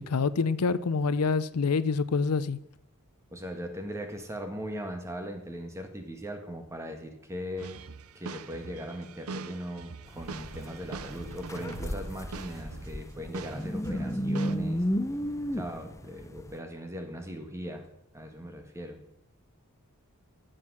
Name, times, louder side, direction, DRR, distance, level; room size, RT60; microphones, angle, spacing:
voice 1, 0.0-2.6, left 4 dB, 90° left, 0.6 m, -26 dB
voice 2, 3.3-7.7 8.1-14.8 15.5-17.9 18.1-19.0, equal, 15° right, 1.6 m, -39 dB
sound 1, 7.6-13.0 13.3-14.6, right 4 dB, 75° right, 0.7 m, -43 dB
sound 2, 10.1-16.6, equal, 15° left, 0.6 m, -33 dB
13.5 x 7.8 x 6.2 m
head